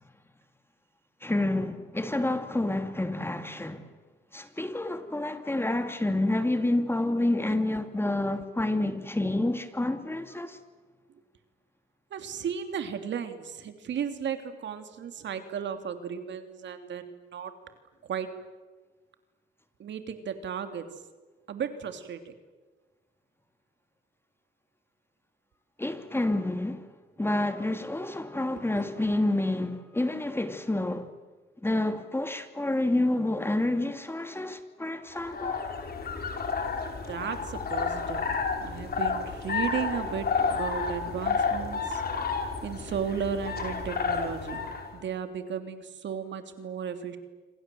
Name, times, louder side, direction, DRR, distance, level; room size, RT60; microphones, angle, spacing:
voice 1, 1.2-3.9 4.3-10.6 25.8-26.9 27.2-31.1 31.6-35.6, left 1 dB, 10° left, 2.6 m, -28 dB
voice 2, 12.1-17.5 18.1-18.3 19.8-20.8 21.5-22.3 28.4-28.8 37.1-38.3 38.6-42.0 42.6-44.6 44.9-47.2, right 7 dB, 65° right, 2.9 m, -35 dB
sound 1, 35.1-44.9, left 5 dB, 50° left, 5.0 m, -31 dB
27.0 x 26.5 x 7.8 m
cardioid pair, 90°, 20 cm